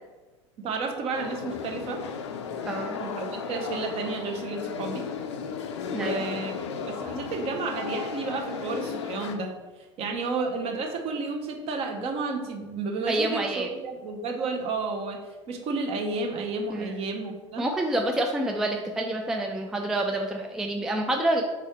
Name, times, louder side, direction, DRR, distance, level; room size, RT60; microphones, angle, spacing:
voice 1, 0.6-2.0 3.0-5.1 5.9-6.5 6.9-9.5 10.0-15.2 15.5-17.6, right 3 dB, 40° right, 2 dB, 0.8 m, -31 dB
sound 1, 1.1-9.3, left 6 dB, 65° left, 0.5 m, -35 dB
voice 2, 2.7-3.0 5.9-6.2 13.1-13.7 16.7-16.9 17.6-21.4, right 1 dB, 5° right, 2 dB, 0.3 m, -27 dB
3.6 x 3.2 x 4.4 m, 1.2 s
figure-of-eight pair, 80°, 16 cm